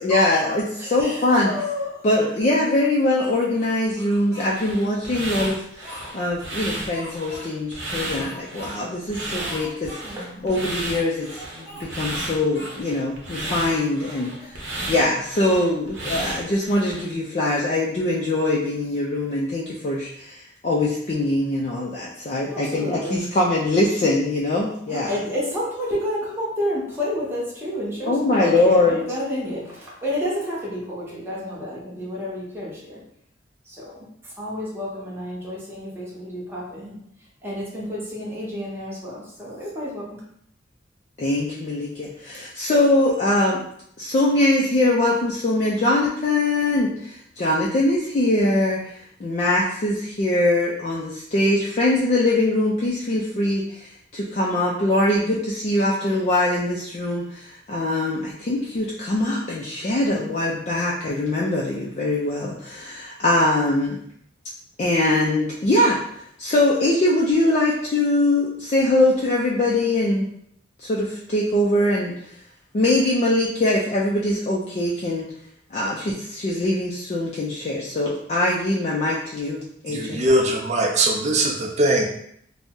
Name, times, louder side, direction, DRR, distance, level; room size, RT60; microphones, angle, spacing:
voice 1, 0.0-1.5 2.0-10.0 10.4-11.3 11.5-14.5 14.9-25.1 28.1-29.0 41.2-43.6 44.0-53.9 54.1-64.0 64.8-66.0 66.4-70.3 70.8-72.1 72.7-75.3 75.7-80.2, left 1 dB, 35° left, -4 dB, 0.3 m, -22 dB
voice 2, 0.8-2.0 9.3-9.4 10.0-10.5 22.4-23.3 24.9-33.0 33.6-37.0 37.4-40.2, left 1 dB, 10° right, -6 dB, 0.8 m, -30 dB
Speech, 3.2-4.6 5.1-6.4 6.9-7.5 8.1-8.7 9.0-9.1 9.4-10.2 10.9-11.8 12.1-12.8 13.3-14.7, equal, 15° left, 1.0 m, -41 dB
sound 1, 4.6-17.1, right 1 dB, 70° right, 0.8 m, -33 dB
voice 3, 79.9-82.1, right 1 dB, 35° right, 1 dB, 0.5 m, -21 dB
2.6 x 2.0 x 3.5 m, 0.70 s
head